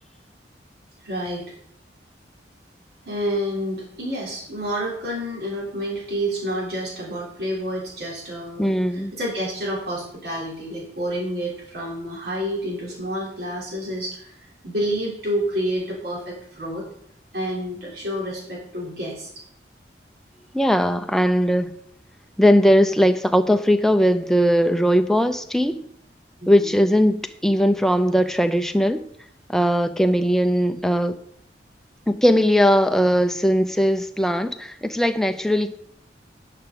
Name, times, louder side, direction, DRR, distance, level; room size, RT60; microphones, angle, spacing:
voice 1, 1.0-1.5 3.1-16.8 17.3-19.3 26.4-26.8, equal, 60° right, -4 dB, 3.6 m, -29 dB
voice 2, 8.6-9.1 20.5-21.7 22.4-25.8 26.5-29.0 29.5-31.1 32.1-35.7, equal, ahead, 8 dB, 0.4 m, -19 dB
11.0 x 5.8 x 3.9 m, 0.68 s
head